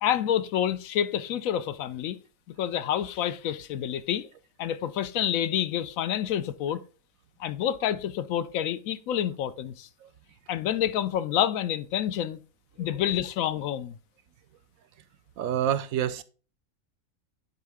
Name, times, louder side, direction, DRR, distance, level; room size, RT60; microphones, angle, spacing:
voice 1, 0.0-2.2 2.5-4.3 4.6-6.8 7.4-9.9 10.5-12.4 12.8-14.0, left 10 dB, 80° left, 1.0 m, -28 dB
voice 2, 15.4-16.2, right 10 dB, 90° right, 1.1 m, -28 dB
9.8 x 3.7 x 3.5 m
omnidirectional pair, 1.4 m